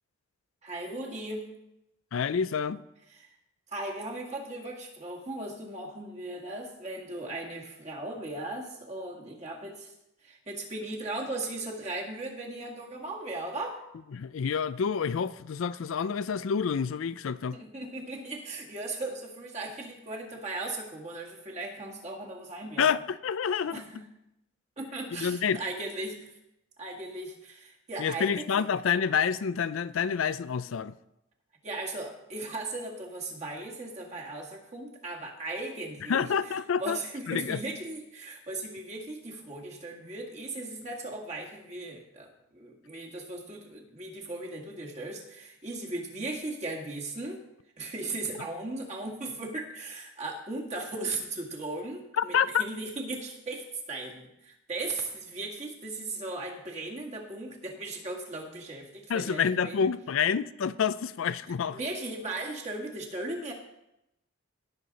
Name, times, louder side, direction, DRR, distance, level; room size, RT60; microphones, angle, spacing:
voice 1, 0.6-1.5 3.2-3.3 3.7-9.9 10.2-13.8 17.5-22.9 23.7-24.0 24.8-26.3 26.8-28.5 31.6-36.3 36.8-47.4 47.8-59.9 61.7-63.5, right 2 dB, 35° right, 1.9 m, -37 dB
voice 2, 2.1-2.8 14.1-17.6 22.8-23.8 25.1-25.6 28.0-30.9 36.1-37.0 37.3-37.6 52.2-52.6 59.1-61.8, left 7 dB, 80° left, 0.4 m, -28 dB
18.0 x 6.7 x 4.1 m
head